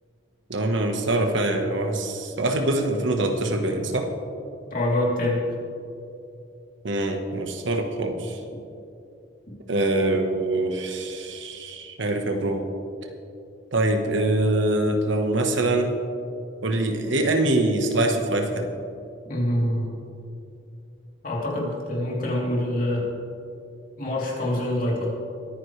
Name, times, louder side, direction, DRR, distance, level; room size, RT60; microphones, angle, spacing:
voice 1, 0.5-4.1 6.8-8.4 9.7-12.6 13.7-15.9 16.6-18.7, right 2 dB, 75° right, 4 dB, 1.3 m, -24 dB
voice 2, 4.7-5.6 19.2-19.9 21.2-23.1 24.0-25.1, left 1 dB, 45° left, -4 dB, 3.2 m, -25 dB
22.5 x 9.7 x 3.3 m, 2.6 s
head